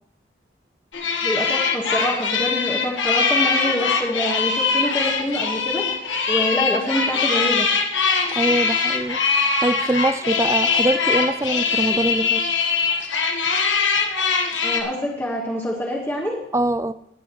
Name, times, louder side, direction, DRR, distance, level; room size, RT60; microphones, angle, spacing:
sound 1, 0.9-14.8, left 5 dB, 90° left, 1.5 m, -22 dB
voice 1, 1.2-7.7 14.6-16.4, left 1 dB, 10° left, -2 dB, 1.5 m, -26 dB
voice 2, 8.3-9.2 9.6-12.4 16.5-16.9, right 1 dB, 15° right, 14 dB, 0.3 m, -23 dB
18.5 x 9.5 x 3.1 m, 0.73 s
head